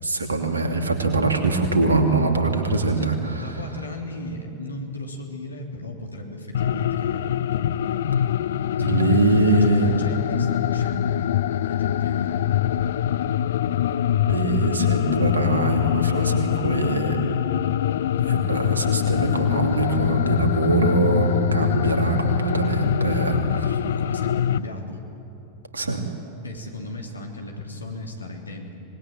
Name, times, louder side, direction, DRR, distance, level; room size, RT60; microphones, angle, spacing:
voice 1, 0.0-3.5 8.1-8.3 8.8-9.9 14.2-17.2 18.2-23.8 25.7-26.0, right 3 dB, 75° right, 4 dB, 2.7 m, -23 dB
voice 2, 3.0-7.4 8.8-11.2 11.6-12.5 23.9-25.0 26.4-28.7, left 1 dB, 80° left, 2 dB, 3.1 m, -35 dB
sound 1, 6.5-24.6, left 10 dB, 60° left, 0.5 m, -24 dB
25.5 x 20.5 x 9.1 m, 3.0 s
figure-of-eight pair, 90°, 0 cm